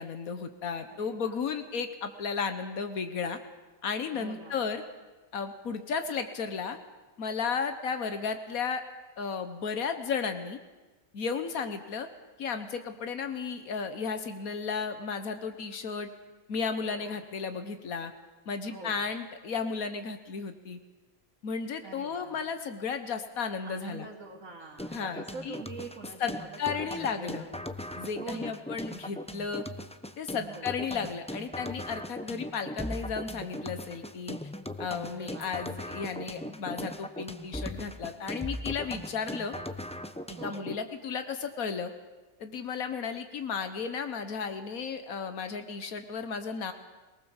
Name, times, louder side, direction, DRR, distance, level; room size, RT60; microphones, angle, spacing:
voice 1, 0.0-3.4 3.8-4.8 5.3-6.8 7.2-8.8 9.2-10.6 11.1-12.1 12.4-16.1 16.5-18.1 18.5-20.8 21.4-24.1 24.9-25.6 26.2-26.3 26.6-27.5 28.0-29.6 30.2-34.4 34.8-39.5 40.4-41.9 42.4-46.7, left 5 dB, 90° left, 8 dB, 1.7 m, -34 dB
voice 2, 0.9-1.4 4.1-4.6 16.8-17.2 18.6-19.1 21.8-22.4 23.6-27.5 28.2-28.6 30.4-30.7 35.0-35.5 40.4-40.7, right 4 dB, 90° right, -5 dB, 3.1 m, -45 dB
sound 1, 24.8-40.8, left 1 dB, 5° left, 0.6 m, -39 dB
23.0 x 19.0 x 7.2 m, 1.2 s
omnidirectional pair, 1.4 m